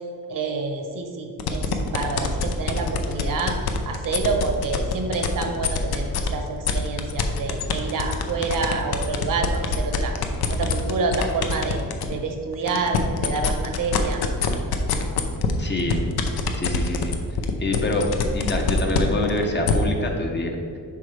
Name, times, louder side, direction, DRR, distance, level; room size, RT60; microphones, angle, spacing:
voice 1, 0.3-10.1 10.5-11.8 12.1-14.2, right 4 dB, 60° right, 4 dB, 0.9 m, -28 dB
sound 1, 1.4-6.3 6.6-12.1 12.5-19.7, left 6 dB, 80° left, 0.7 m, -24 dB
voice 2, 15.6-16.1 16.5-17.2 17.6-20.6, left 2 dB, 30° left, 2 dB, 0.7 m, -25 dB
8.3 x 5.7 x 3.3 m, 2.2 s
wide cardioid pair, 175°, 37 cm